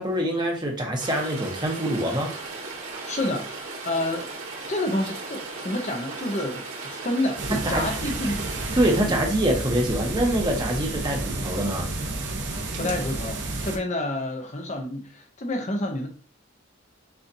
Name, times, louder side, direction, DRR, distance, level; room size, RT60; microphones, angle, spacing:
voice 1, 0.0-2.3 7.6-7.8 8.7-11.9, right 1 dB, 20° right, 0.9 m, -25 dB
Rain, 1.0-9.0, right 3 dB, 75° right, 2.1 m, -36 dB
voice 2, 3.1-4.3 4.7-8.5 9.0-9.2 12.8-16.1, left 1 dB, 35° left, 0.6 m, -29 dB
sound 1, 7.4-13.8, right 2 dB, 55° right, 0.8 m, -31 dB
6.7 x 2.5 x 2.6 m
head